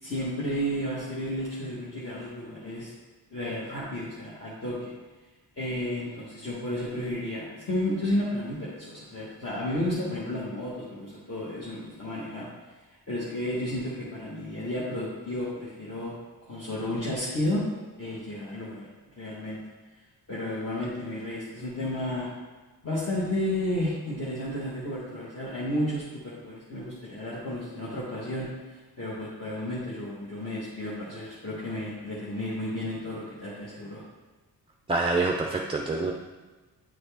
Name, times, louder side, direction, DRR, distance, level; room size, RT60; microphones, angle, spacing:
voice 1, 0.0-2.9 3.3-4.9 5.6-12.5 13.1-16.1 16.5-17.6 18.0-18.9 19.2-19.6 20.3-22.3 22.8-34.0, left 1 dB, 40° left, -8 dB, 1.3 m, -32 dB
voice 2, 34.9-36.1, right 3 dB, 15° right, 1 dB, 0.3 m, -26 dB
8.9 x 4.0 x 3.4 m, 1.2 s
wide cardioid pair, 140°, 38 cm